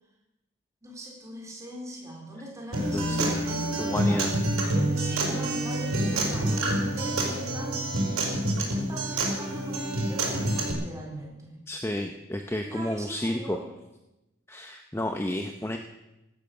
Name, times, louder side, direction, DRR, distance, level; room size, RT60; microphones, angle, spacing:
voice 1, 0.8-4.2 4.7-7.8 8.6-11.6 12.6-13.7, right 1 dB, 15° right, -1 dB, 4.0 m, -41 dB
Acoustic guitar, 2.7-10.7, right 1 dB, 85° right, 5.1 m, -27 dB
voice 2, 2.9-3.4 3.8-4.3 11.7-13.6 14.5-15.8, left 1 dB, 10° left, 5 dB, 0.7 m, -31 dB
16.5 x 12.5 x 6.7 m, 0.95 s
head